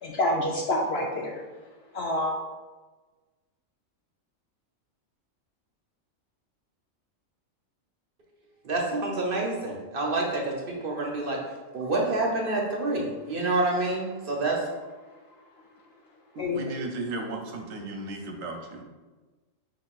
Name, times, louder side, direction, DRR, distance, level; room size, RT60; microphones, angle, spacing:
voice 1, 0.0-1.3 1.9-2.4 16.4-16.7, left 1 dB, 65° left, -1 dB, 0.6 m, -27 dB
voice 2, 8.6-11.4 11.7-14.7, right 2 dB, 50° right, -1 dB, 0.7 m, -28 dB
voice 3, 16.3-18.8, right 2 dB, 75° right, 3 dB, 1.0 m, -35 dB
5.0 x 3.9 x 2.3 m, 1.3 s
omnidirectional pair, 1.4 m